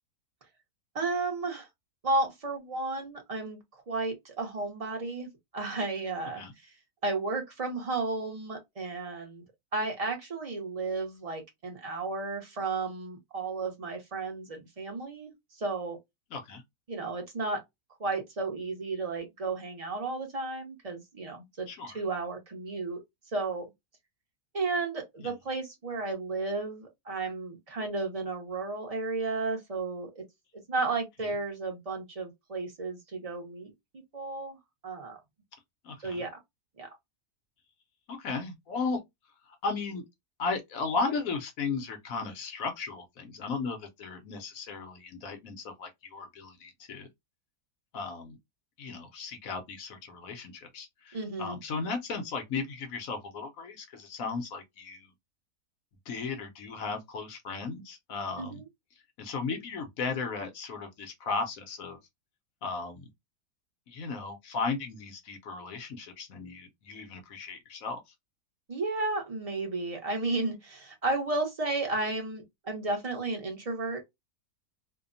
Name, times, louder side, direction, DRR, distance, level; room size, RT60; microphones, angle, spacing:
voice 1, 0.9-1.7 2.0-3.6 3.9-6.7 7.0-9.4 9.7-15.3 15.6-16.0 16.9-17.6 18.0-21.7 21.9-23.0 23.3-23.7 24.5-30.2 30.7-33.7 34.1-34.6 34.8-35.2 36.0-36.3 36.8-36.9 51.1-51.6 58.4-58.7 68.7-74.1, right 3 dB, 30° right, 0.7 m, -33 dB
voice 2, 16.3-16.6 21.7-22.0 25.2-25.3 35.8-36.2 38.1-39.0 39.5-40.0 40.4-47.1 47.9-48.4 48.8-55.1 56.1-58.6 59.2-62.0 62.6-63.1 63.9-68.0, left 4 dB, 70° left, 1.0 m, -35 dB
2.8 x 2.1 x 2.5 m
omnidirectional pair, 1.6 m